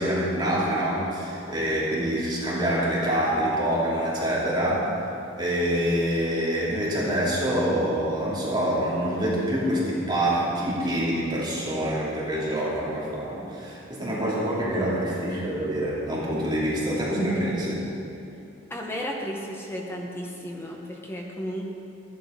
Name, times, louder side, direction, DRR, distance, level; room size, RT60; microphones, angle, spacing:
voice 1, 0.0-4.9 5.4-17.8, right 1 dB, 20° right, -7 dB, 2.6 m, -26 dB
voice 2, 18.7-21.6, equal, 10° left, -1 dB, 0.9 m, -33 dB
13.0 x 11.0 x 5.1 m, 2.8 s
head